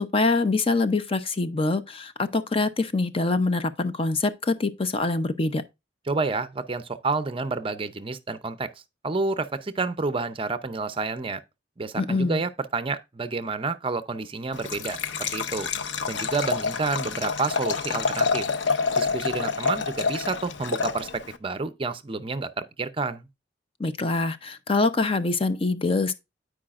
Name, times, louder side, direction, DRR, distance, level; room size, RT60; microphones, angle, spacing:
voice 1, 0.0-5.6 12.0-12.4 23.8-26.1, left 3 dB, 30° left, 0.6 m, -24 dB
voice 2, 6.1-8.7 9.0-11.4 11.8-15.7 16.1-18.5 19.0-23.3, right 3 dB, 30° right, 0.6 m, -29 dB
Liquid, 14.5-21.4, left 5 dB, 90° left, 0.7 m, -28 dB
13.0 x 4.9 x 2.4 m
head